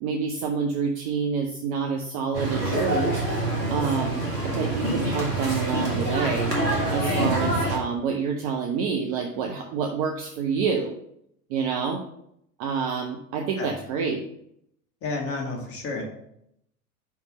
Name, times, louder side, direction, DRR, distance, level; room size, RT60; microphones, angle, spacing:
voice 1, 0.0-3.4 3.7-6.5 6.9-11.0 11.5-12.1 12.6-14.3, right 5 dB, 25° right, 3 dB, 0.4 m, -28 dB
sound 1, 2.3-7.8, right 1 dB, 85° right, 1.7 m, -26 dB
voice 2, 15.0-16.0, left 3 dB, 30° left, 1 dB, 1.6 m, -31 dB
5.3 x 4.6 x 5.1 m, 0.75 s
figure-of-eight pair, 90°, 48 cm